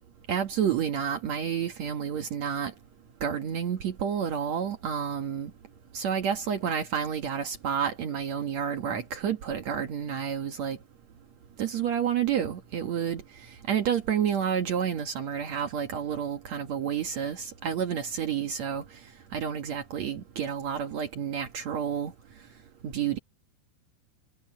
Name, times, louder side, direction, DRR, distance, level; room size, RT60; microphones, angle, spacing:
voice 1, 0.3-2.7 3.2-5.5 5.9-10.8 11.6-18.8 19.3-22.1 22.8-23.2, right 8 dB, 65° right, 1.7 m, -30 dB
omnidirectional pair, 5.2 m